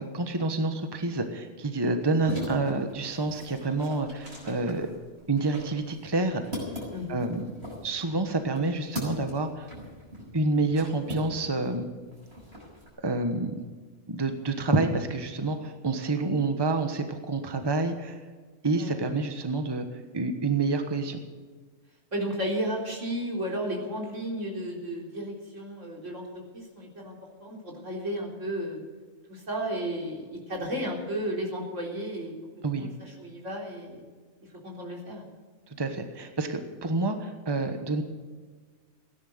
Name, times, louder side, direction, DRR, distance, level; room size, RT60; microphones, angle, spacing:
voice 1, 0.0-4.9 5.3-6.4 7.1-7.5 7.8-9.7 10.3-11.9 13.0-13.6 14.1-18.2 18.6-21.2 32.6-32.9 35.7-38.0, right 3 dB, 20° right, 7 dB, 1.2 m, -28 dB
sound 1, 2.0-11.7 12.0-12.9, left 1 dB, 55° right, 6.8 m, -40 dB
voice 2, 6.9-7.2 18.7-18.9 22.1-26.2 26.5-27.2 27.4-28.8 29.3-32.3 32.7-34.1 34.6-35.3, equal, 75° right, -1 dB, 4.2 m, -33 dB
17.0 x 11.0 x 7.9 m, 1.4 s
omnidirectional pair, 1.3 m